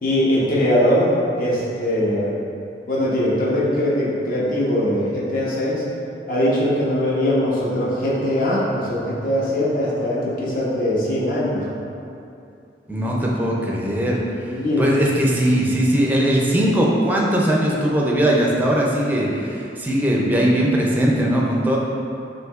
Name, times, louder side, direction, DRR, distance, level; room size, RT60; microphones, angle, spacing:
voice 1, 0.0-2.4 2.9-5.8 6.3-11.7 14.5-14.9, left 1 dB, 50° left, -6 dB, 0.8 m, -21 dB
voice 2, 12.9-14.5 14.8-21.8, right 1 dB, 10° right, -3 dB, 0.4 m, -19 dB
6.1 x 2.7 x 2.4 m, 2.6 s
head